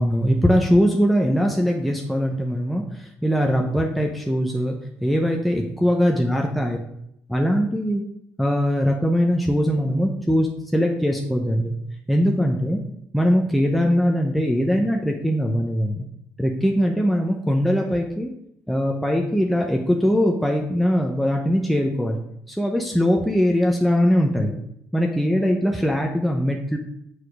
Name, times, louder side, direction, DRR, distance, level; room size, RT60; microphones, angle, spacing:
voice 1, 0.0-4.8 5.0-6.8 7.3-8.0 8.4-11.7 12.1-12.8 13.1-16.1 16.4-18.3 18.7-22.2 22.5-24.6 24.9-26.8, equal, ahead, 0 dB, 0.9 m, -21 dB
5.9 x 4.9 x 4.9 m, 0.76 s
cardioid pair, 85°, 5 cm